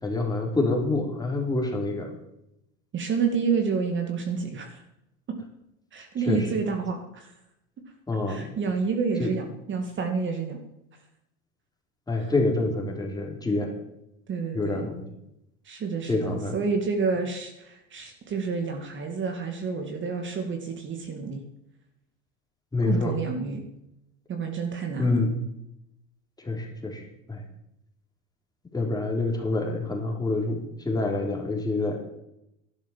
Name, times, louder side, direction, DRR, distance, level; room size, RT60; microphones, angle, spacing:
voice 1, 0.0-2.1 6.3-6.5 8.1-8.5 9.2-9.3 12.1-13.7 14.5-15.0 16.1-16.5 22.7-23.1 25.0-25.3 26.4-27.0 27.3-27.4 28.7-32.0, left 2 dB, 10° left, 1 dB, 3.7 m, -27 dB
voice 2, 2.9-4.8 5.9-7.3 8.3-10.6 12.1-12.3 14.3-14.9 15.6-21.4 22.8-23.6 24.3-25.2, right 5 dB, 35° right, 4 dB, 2.2 m, -29 dB
12.5 x 11.5 x 7.4 m, 0.83 s
supercardioid pair, 125°, 35 cm